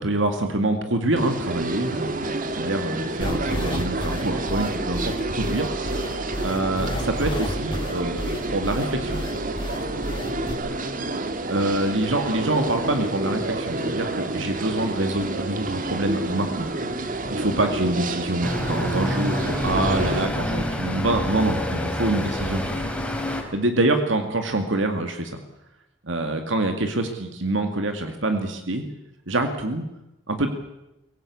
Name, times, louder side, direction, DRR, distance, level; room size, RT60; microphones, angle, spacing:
voice 1, 0.0-6.1 6.4-9.2 11.5-16.7 17.0-22.9 23.5-25.4 26.0-28.8 29.3-29.9 30.3-30.5, right 2 dB, 70° right, 6 dB, 2.2 m, -26 dB
sound 1, 1.2-20.3, right 2 dB, 45° right, 1.8 m, -29 dB
sound 2, 3.2-10.5, equal, 25° left, 3.4 m, -31 dB
Traffic noise roadway noise, 18.4-23.4, equal, 5° left, 3.6 m, -27 dB
23.5 x 18.0 x 8.5 m, 0.90 s
head